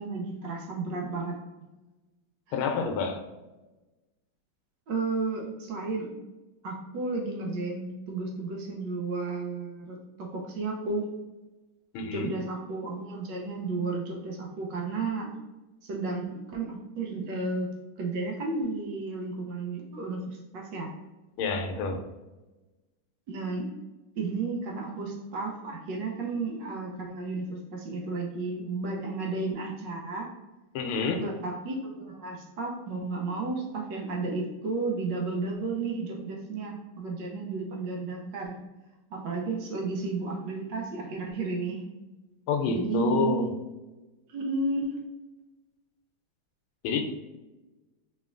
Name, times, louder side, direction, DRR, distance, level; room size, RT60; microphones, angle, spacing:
voice 1, 0.0-1.3 4.9-6.1 6.6-11.1 12.1-15.3 15.8-17.7 18.0-20.9 23.3-23.7 24.2-30.3 31.2-38.5 39.1-41.8 42.7-43.5 44.3-45.0, right 3 dB, 70° right, 1.2 m, -33 dB
voice 2, 2.5-3.2 11.9-12.3 21.4-22.0 30.7-31.3 42.5-43.5 46.8-47.0, left 4 dB, 85° left, 1.4 m, -28 dB
4.2 x 3.3 x 2.4 m
omnidirectional pair, 2.2 m